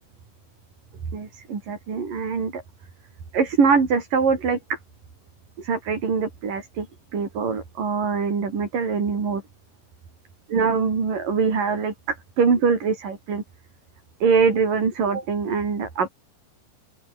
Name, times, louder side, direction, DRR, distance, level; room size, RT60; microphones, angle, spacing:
voice 1, 1.1-2.6 3.3-4.8 5.6-6.9 7.1-9.4 10.5-13.4 14.2-16.1, right 5 dB, 60° right, 6.4 m, -23 dB
open air
omnidirectional pair, 4.4 m